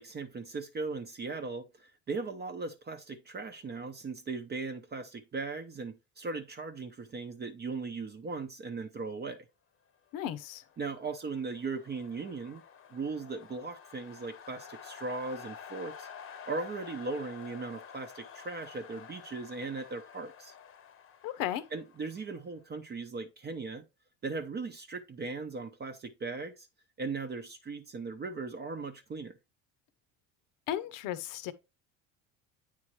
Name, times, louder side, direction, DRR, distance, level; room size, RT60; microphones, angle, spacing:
voice 1, 0.0-9.5 10.8-12.6 12.9-16.1 16.5-20.5 21.7-23.8 24.2-26.7 27.0-29.4, right 4 dB, 30° right, 0.7 m, -38 dB
voice 2, 10.1-10.6 21.2-21.6 30.7-31.5, left 11 dB, 65° left, 0.8 m, -35 dB
sound 1, 10.5-22.5, left 7 dB, 35° left, 0.9 m, -50 dB
8.7 x 3.7 x 3.1 m
supercardioid pair, 90°, 35 cm